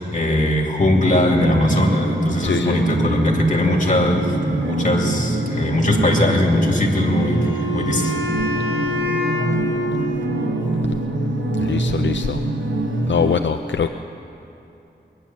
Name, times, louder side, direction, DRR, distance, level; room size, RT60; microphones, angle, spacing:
voice 1, 0.1-8.1, left 1 dB, 45° left, 1 dB, 2.2 m, -20 dB
sound 1, 0.8-13.4, right 2 dB, 85° right, 1.2 m, -24 dB
voice 2, 2.4-2.8 11.6-12.4 13.1-13.9, left 6 dB, 75° left, 7 dB, 0.5 m, -22 dB
Wind instrument woodwind instrument, 6.7-10.8, left 2 dB, 70° right, 4.3 m, -27 dB
22.0 x 9.3 x 7.2 m, 2.9 s
wide cardioid pair, 60°, 19 cm